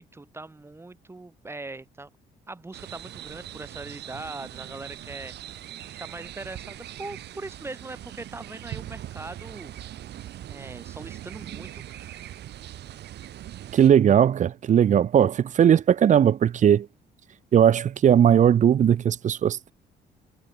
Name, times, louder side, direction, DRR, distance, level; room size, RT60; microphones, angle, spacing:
voice 1, 0.0-2.1 2.5-5.6 5.9-9.7 10.5-12.4, right 2 dB, 15° right, 4.0 m, -41 dB
sound 1, 2.7-13.9, right 12 dB, 70° right, 3.9 m, -41 dB
voice 2, 13.7-16.9 17.5-19.7, right 9 dB, 45° right, 0.7 m, -18 dB
cardioid pair, 110°, 18 cm